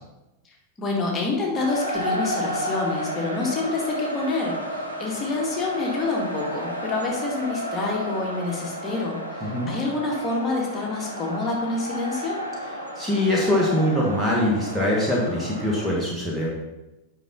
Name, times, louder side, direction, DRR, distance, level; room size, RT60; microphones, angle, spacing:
voice 1, 0.8-12.4, left 3 dB, 20° left, -2 dB, 2.1 m, -27 dB
sound 1, 1.5-15.9, equal, 90° right, 1.2 m, -32 dB
voice 2, 9.4-9.7 13.0-16.5, left 1 dB, 5° right, -5 dB, 1.6 m, -23 dB
9.1 x 5.5 x 4.1 m, 1.0 s
figure-of-eight pair, 90°, 0 cm